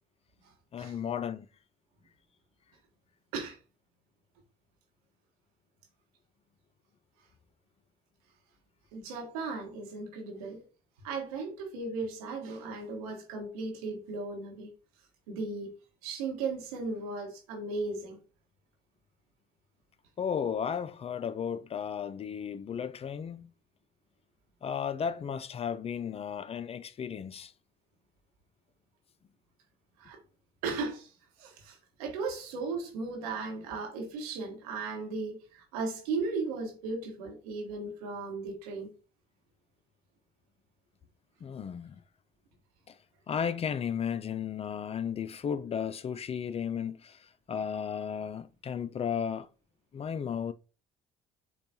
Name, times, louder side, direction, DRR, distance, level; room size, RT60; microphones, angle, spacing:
voice 1, 0.7-1.5 20.2-23.5 24.6-27.5 41.4-42.0 42.9-43.0 43.3-49.5 49.9-50.5, left 7 dB, 35° left, 0.4 m, -34 dB
voice 2, 8.9-10.6 11.0-14.7 15.3-15.7 16.0-18.2 30.0-30.2 30.6-31.1 31.4-38.9, right 4 dB, 85° right, 1.1 m, -36 dB
6.7 x 2.3 x 2.7 m
hypercardioid pair, 60°, 19 cm